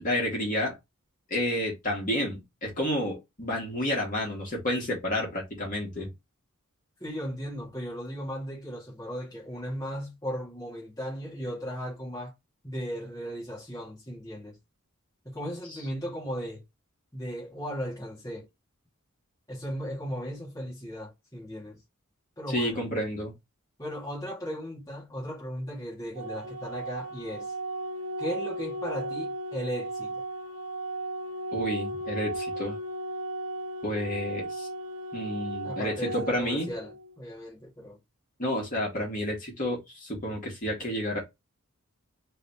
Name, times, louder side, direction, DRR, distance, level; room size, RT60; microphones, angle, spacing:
voice 1, 0.0-0.8 1.3-6.1 22.5-23.3 31.5-32.8 33.8-34.7 35.1-36.7 38.4-41.2, left 1 dB, 40° left, 2.4 m, -30 dB
voice 2, 7.0-12.3 12.6-14.6 15.2-16.6 17.1-18.5 19.5-21.8 22.4-22.8 23.8-27.5 28.2-30.2 35.6-38.0, equal, 15° left, 2.3 m, -36 dB
Organ, 26.2-37.1, right 1 dB, 85° right, 1.1 m, -35 dB
4.7 x 3.6 x 2.9 m
head